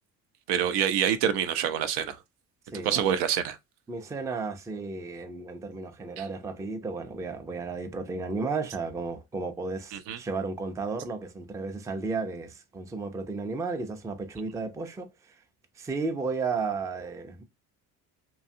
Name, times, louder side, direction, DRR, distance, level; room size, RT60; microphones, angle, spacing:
voice 1, 0.5-2.2 2.8-3.6 6.2-6.3 9.9-10.2, right 9 dB, 70° right, 0.6 m, -26 dB
voice 2, 2.7-3.1 3.9-15.4 15.8-17.4, right 4 dB, 10° right, 0.4 m, -33 dB
2.7 x 2.3 x 2.6 m
supercardioid pair, 70°, 42 cm